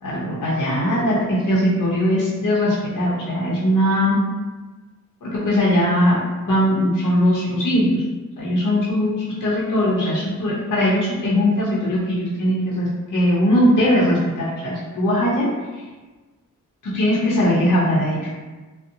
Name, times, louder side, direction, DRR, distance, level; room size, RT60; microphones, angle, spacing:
voice 1, 0.0-4.2 5.2-6.2 6.5-8.0 8.4-15.5 16.8-18.2, equal, 60° left, -7 dB, 0.7 m, -20 dB
2.6 x 2.1 x 2.6 m, 1.3 s
cardioid pair, 55°, 34 cm